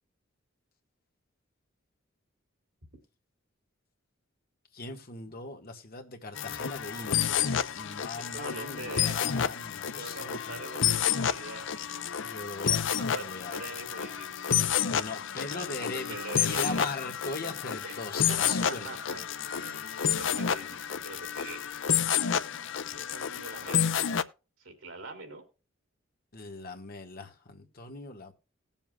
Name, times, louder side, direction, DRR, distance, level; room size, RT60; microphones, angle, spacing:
voice 1, 4.7-10.6 12.2-13.5 14.8-18.8 19.1-19.8 26.3-28.3, left 3 dB, 50° left, 1.6 m, -40 dB
sound 1, 6.4-24.2, left 8 dB, 65° left, 0.5 m, -30 dB
voice 2, 8.2-9.2 10.0-11.7 13.1-14.6 15.5-15.7 15.9-16.9 17.8-19.2 19.5-21.7 22.9-24.0 24.6-25.4, right 2 dB, 85° right, 2.8 m, -43 dB
19.0 x 7.2 x 2.3 m
head